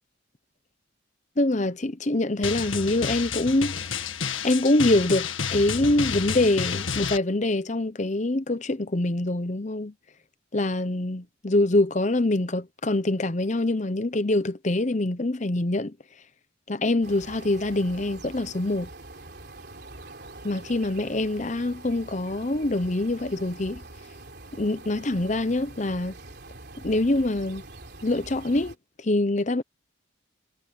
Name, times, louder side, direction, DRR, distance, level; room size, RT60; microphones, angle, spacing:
voice 1, 1.4-4.0 4.4-9.9 10.5-15.9 16.7-18.9 20.4-23.8 24.5-26.1 26.8-27.6 28.0-29.6, left 2 dB, 35° left, 0.8 m, -25 dB
Drum, 2.4-7.2, left 6 dB, 75° left, 1.8 m, -30 dB
sound 1, 17.0-28.8, right 2 dB, 50° right, 3.8 m, -44 dB
head